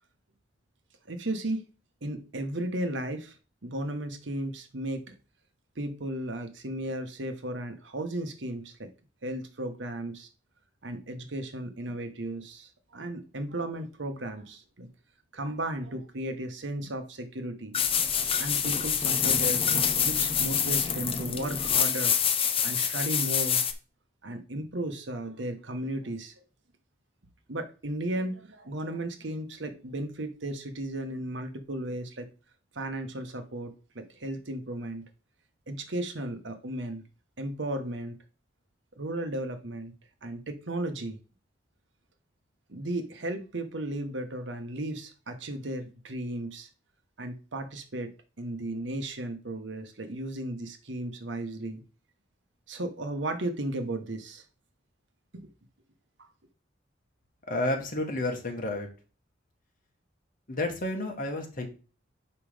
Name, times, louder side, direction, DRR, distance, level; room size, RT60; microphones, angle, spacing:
voice 1, 1.1-1.6 2.0-3.3 3.6-5.2 5.8-8.9 9.2-10.3 10.8-14.9 15.3-17.8 18.4-22.1 22.4-23.6 24.2-26.4 27.5-32.3 32.7-35.1 35.7-37.0 37.4-38.2 39.0-39.9 40.2-41.2 42.7-46.7 47.2-48.1 48.4-51.8 52.7-54.4 55.3-55.5 56.2-56.3, right 1 dB, 70° right, 1.2 m, -35 dB
sound 1, 17.7-23.7, left 7 dB, 30° left, 0.7 m, -26 dB
voice 2, 57.5-58.9 60.5-61.7, left 1 dB, 50° left, 1.7 m, -30 dB
5.6 x 5.3 x 5.0 m
head